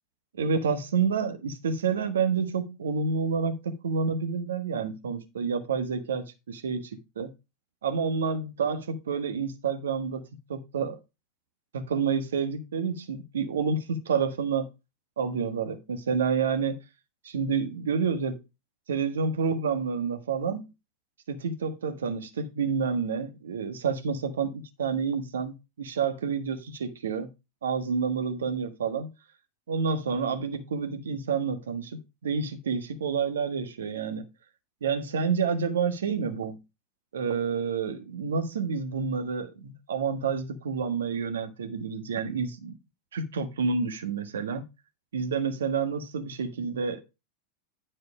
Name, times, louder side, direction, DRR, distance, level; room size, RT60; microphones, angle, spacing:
voice 1, 0.4-7.3 7.8-11.0 11.7-14.7 15.2-16.8 17.2-18.4 18.9-20.7 21.3-27.3 27.6-29.1 29.7-34.3 34.8-36.6 37.1-42.8 43.1-44.7 45.1-47.0, right 5 dB, 75° right, 1.4 m, -29 dB
10.0 x 4.5 x 4.9 m
figure-of-eight pair, 90°, 0 cm